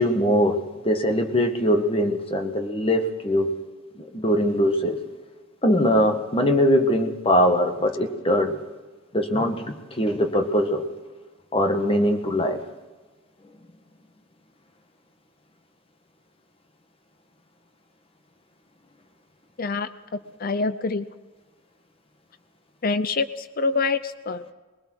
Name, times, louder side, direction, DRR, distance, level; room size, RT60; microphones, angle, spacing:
voice 1, 0.0-3.5 3.9-5.0 5.6-8.6 9.1-10.8 11.5-12.6, equal, 25° left, 5 dB, 1.6 m, -22 dB
voice 2, 19.6-21.1 22.8-24.5, left 4 dB, 45° left, 12 dB, 0.6 m, -26 dB
22.0 x 19.5 x 6.3 m, 1.3 s
head